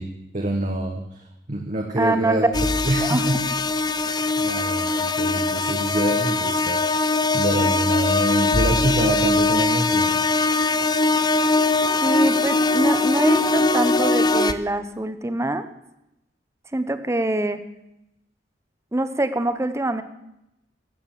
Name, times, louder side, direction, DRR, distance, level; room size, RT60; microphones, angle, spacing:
voice 1, 0.0-2.5 2.8-3.4 4.0-10.2, right 1 dB, 45° right, 1 dB, 1.3 m, -26 dB
voice 2, 2.0-2.5 3.0-3.3 12.0-15.7 16.7-17.6 18.9-20.0, right 1 dB, 15° right, 11 dB, 0.7 m, -24 dB
sound 1, 2.5-14.5, left 3 dB, 25° left, 0.6 m, -21 dB
13.5 x 8.7 x 7.4 m, 0.86 s
head